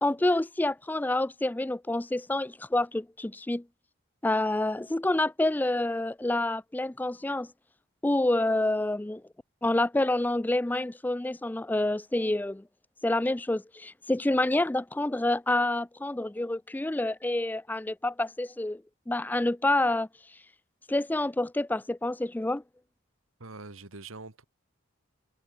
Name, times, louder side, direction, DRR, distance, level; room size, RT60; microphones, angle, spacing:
voice 1, 0.0-3.6 4.2-7.5 8.0-9.2 9.6-12.6 13.0-18.8 19.1-20.1 20.9-22.6, left 1 dB, 10° left, 0.3 m, -28 dB
voice 2, 23.4-24.4, right 3 dB, 85° right, 2.1 m, -44 dB
head